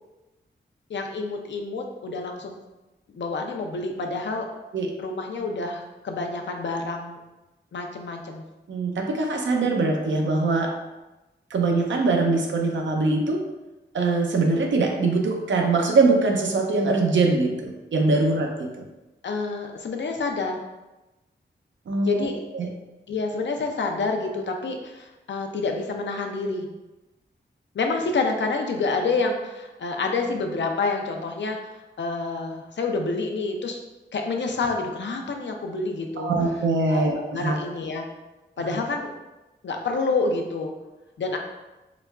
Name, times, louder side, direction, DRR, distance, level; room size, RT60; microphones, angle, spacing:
voice 1, 0.9-2.6 3.1-4.5 5.0-7.2 7.7-8.4 19.2-20.6 22.0-22.4 23.1-26.7 27.7-31.6 32.0-33.8 34.1-36.3 36.9-38.1 38.6-39.1 39.6-40.7 41.2-41.4, left 3 dB, 70° left, 3 dB, 0.5 m, -28 dB
voice 2, 8.7-10.7 11.5-13.4 13.9-18.8 21.9-22.3 22.6-22.7 36.2-37.6, right 3 dB, 75° right, 2 dB, 0.6 m, -22 dB
4.8 x 2.2 x 2.3 m, 1.0 s
cardioid pair, 45°, 19 cm